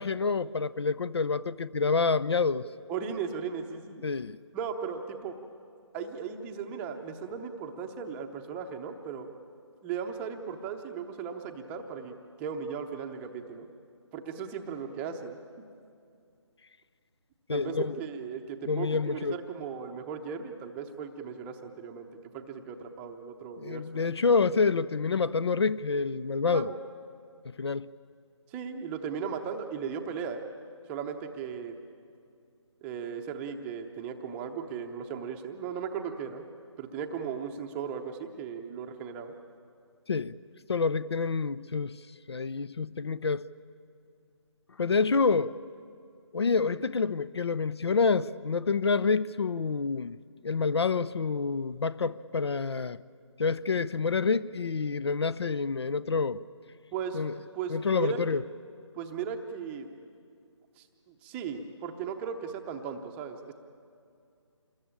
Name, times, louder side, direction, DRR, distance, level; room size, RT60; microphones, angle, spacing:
voice 1, 0.0-2.7 4.0-4.4 17.5-17.9 18.7-19.4 23.6-26.7 27.6-27.9 40.1-40.3 40.7-41.9 42.3-43.5 44.8-45.5 46.3-50.2 50.4-53.0 53.4-56.4 57.1-57.4 57.7-58.4, left 4 dB, 60° left, 0.6 m, -27 dB
voice 2, 2.9-4.0 4.5-5.4 5.9-9.3 9.8-13.7 14.1-15.4 17.5-22.1 22.3-24.0 26.5-26.8 28.5-30.5 30.9-31.8 32.8-36.4 36.8-39.3 56.9-58.4 58.9-59.9 60.8-63.5, right 6 dB, 10° right, 0.8 m, -37 dB
27.5 x 21.0 x 8.8 m
figure-of-eight pair, 160°, 16 cm